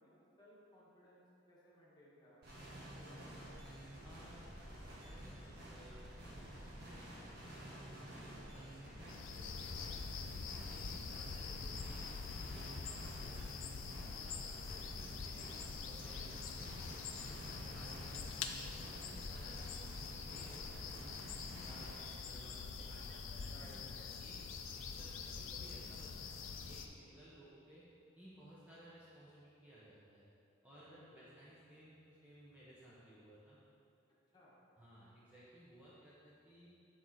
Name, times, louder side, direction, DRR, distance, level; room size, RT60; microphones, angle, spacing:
voice 1, 0.0-2.4 2.9-3.7 23.4-24.0 30.9-31.3 34.3-34.6, left 1 dB, 20° left, -7 dB, 1.5 m, -62 dB
sound 1, 2.4-22.0, equal, 55° right, 1.4 m, -51 dB
voice 2, 4.0-4.5 4.9-10.0 10.3-13.6 14.1-18.2 18.6-21.3 21.6-23.8 24.2-27.9 28.1-30.2 30.6-33.6 34.8-36.7, right 1 dB, 10° right, -10 dB, 0.9 m, -59 dB
sound 2, 9.1-26.9, left 5 dB, 80° left, 0.5 m, -45 dB
7.1 x 4.5 x 4.2 m, 2.6 s
head